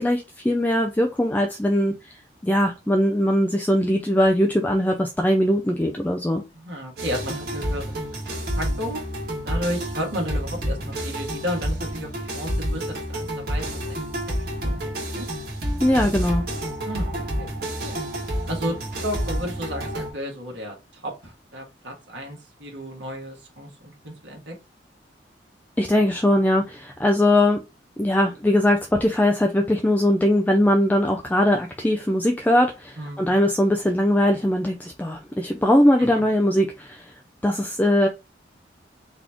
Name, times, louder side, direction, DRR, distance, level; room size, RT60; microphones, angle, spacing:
voice 1, 0.0-2.1 2.4-6.4 15.8-16.4 25.8-27.6 28.0-37.2 37.4-38.1, left 1 dB, 10° left, 0.4 m, -20 dB
voice 2, 6.5-7.9 8.6-9.0 9.4-14.0 14.4-15.3 16.8-18.0 18.4-23.7 24.0-24.5 33.0-33.3 36.0-36.2, equal, 85° right, 1.5 m, -33 dB
sound 1, 7.0-20.1, equal, 60° right, 1.6 m, -29 dB
4.1 x 3.0 x 3.5 m
head